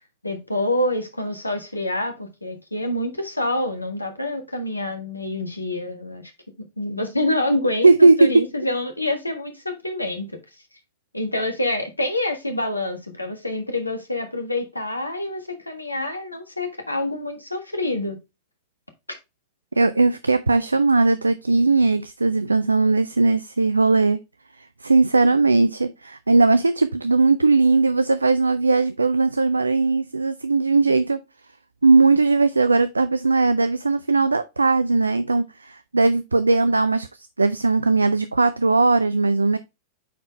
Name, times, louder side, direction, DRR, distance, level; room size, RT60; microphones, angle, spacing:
voice 1, 0.2-6.3 6.6-10.4 11.1-18.2, left 1 dB, 85° left, 1.5 m, -27 dB
voice 2, 7.8-8.3 19.8-24.2 24.8-31.2 31.8-37.1 37.4-39.6, right 3 dB, 80° right, 0.4 m, -18 dB
9.1 x 4.4 x 3.2 m
figure-of-eight pair, 90°, 0 cm